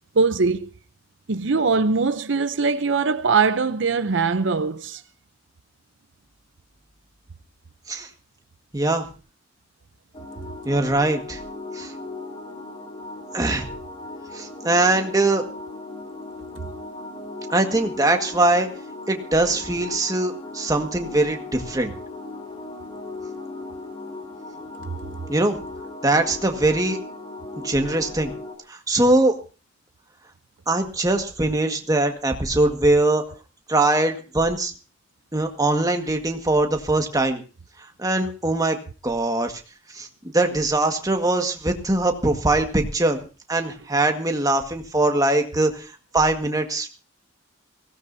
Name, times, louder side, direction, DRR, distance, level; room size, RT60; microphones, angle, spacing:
voice 1, 0.2-0.7 1.3-5.0, right 4 dB, 65° right, 0.7 m, -21 dB
voice 2, 8.7-9.0 10.7-11.4 11.8-11.9 13.3-13.7 14.3-15.4 17.5-18.7 19.1-21.9 25.3-25.6 26.0-27.0 27.6-28.3 28.7-29.4 30.7-33.2 33.7-34.7 35.3-37.4 38.0-38.8 39.0-39.5 39.9-40.1 40.3-43.2 43.5-45.9 46.1-46.9, right 2 dB, 20° right, 1.7 m, -21 dB
sound 1, 10.1-28.5, left 2 dB, 30° left, 3.1 m, -37 dB
22.5 x 17.0 x 2.7 m
head